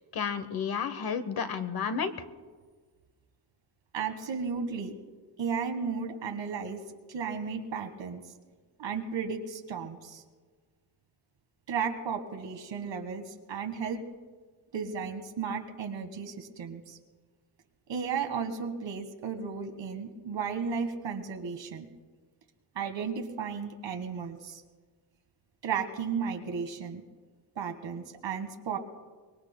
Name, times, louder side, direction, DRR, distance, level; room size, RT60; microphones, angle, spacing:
voice 1, 0.1-2.1, left 6 dB, 55° left, 10 dB, 1.0 m, -31 dB
voice 2, 3.9-4.9 5.4-6.8 7.1-8.2 8.8-10.2 11.7-14.0 14.7-17.0 17.9-21.9 22.7-24.6 25.6-27.0 27.5-28.8, right 6 dB, 85° right, 6 dB, 1.7 m, -34 dB
24.5 x 21.5 x 2.2 m, 1.5 s
wide cardioid pair, 165°, 43 cm